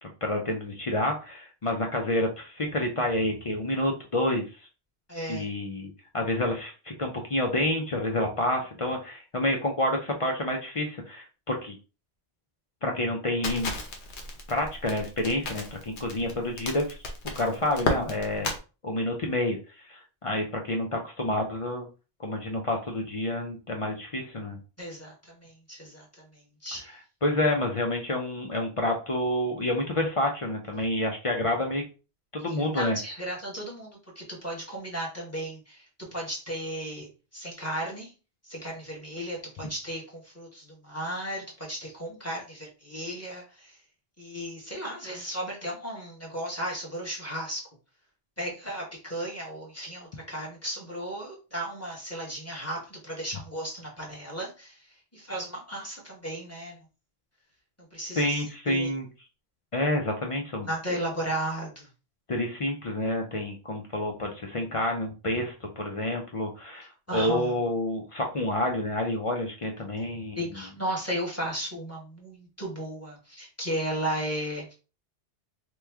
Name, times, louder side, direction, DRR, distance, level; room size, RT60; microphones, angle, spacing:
voice 1, 0.0-4.5 5.3-11.8 12.8-13.7 14.5-17.0 17.4-18.5 18.8-19.6 19.8-21.9 22.2-24.6 27.2-31.8 32.3-33.0 58.2-59.1 59.7-61.0 62.3-70.6, left 1 dB, 50° left, 2 dB, 0.4 m, -29 dB
voice 2, 5.1-5.5 24.8-26.0 26.6-26.8 32.7-35.9 36.1-37.1 37.3-38.1 38.4-43.8 44.2-47.6 48.4-54.8 55.1-56.8 57.9-58.9 60.6-61.9 67.1-67.5 70.4-74.7, right 1 dB, 15° left, -4 dB, 1.1 m, -35 dB
Crackle, 13.4-18.6, left 2 dB, 75° left, 1.0 m, -33 dB
3.1 x 2.2 x 3.4 m, 0.33 s
omnidirectional pair, 1.2 m